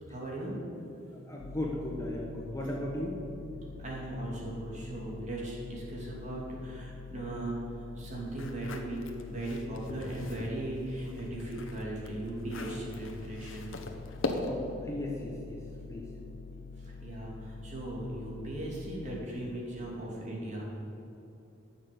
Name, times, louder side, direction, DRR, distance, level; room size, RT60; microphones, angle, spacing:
voice 1, 0.1-0.5 3.8-13.7 16.8-20.6, right 1 dB, 35° right, -4 dB, 2.7 m, -38 dB
voice 2, 1.1-3.2 14.4-16.1, left 1 dB, 15° left, -2 dB, 1.2 m, -36 dB
sound 1, 1.4-19.3, left 4 dB, 55° left, 0.5 m, -46 dB
sound 2, 8.3-10.6 11.0-14.8, left 2 dB, 75° left, 1.1 m, -40 dB
13.0 x 7.1 x 6.9 m, 2.9 s
head